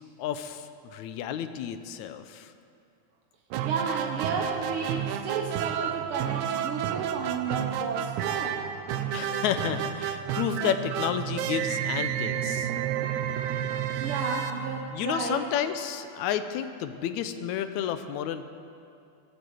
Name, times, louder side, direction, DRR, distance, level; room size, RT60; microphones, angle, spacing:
voice 1, 0.2-2.5 9.1-12.7 14.9-18.5, left 9 dB, 75° left, 10 dB, 2.0 m, -31 dB
sound 1, 3.5-15.4, right 10 dB, 80° right, 2.0 m, -31 dB
voice 2, 3.6-8.6 13.9-15.4, right 4 dB, 55° right, 0 dB, 1.6 m, -32 dB
20.5 x 8.5 x 7.8 m, 2.5 s
omnidirectional pair, 3.6 m